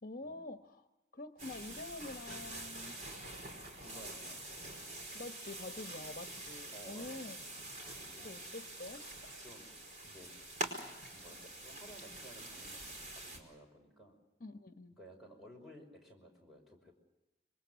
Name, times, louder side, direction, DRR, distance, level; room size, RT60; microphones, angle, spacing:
voice 1, 0.0-0.9 1.1-3.0 5.1-7.5 8.2-9.1 14.4-15.0, left 2 dB, 50° left, 6 dB, 1.2 m, -47 dB
sound 1, 1.4-13.4, right 2 dB, 45° right, 4.7 m, -46 dB
voice 2, 3.8-4.8 6.7-7.5 8.0-8.3 9.4-9.7 10.0-10.3 11.1-14.2 15.0-16.9, right 1 dB, ahead, 0 dB, 5.3 m, -56 dB
26.0 x 23.5 x 7.0 m, 1.0 s
head